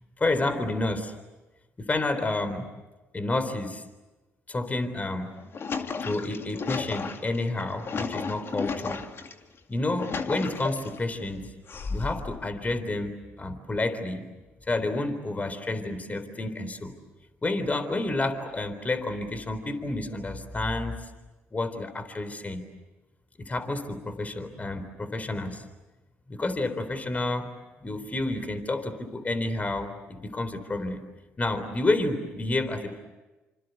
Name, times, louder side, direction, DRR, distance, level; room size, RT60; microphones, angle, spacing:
voice 1, 0.2-1.1 1.8-2.7 3.1-3.8 4.5-5.3 6.0-9.0 9.7-11.5 11.9-14.2 14.7-16.9 17.4-21.0 21.5-22.6 23.4-25.6 26.3-27.5 27.8-31.0 31.4-33.0, left 2 dB, 25° left, 10 dB, 3.9 m, -30 dB
sound 1, 5.2-9.3 9.8-11.0 11.7-12.4, left 5 dB, 45° left, 2.4 m, -34 dB
27.0 x 26.5 x 8.2 m, 1.1 s
hypercardioid pair, 60°, 6 cm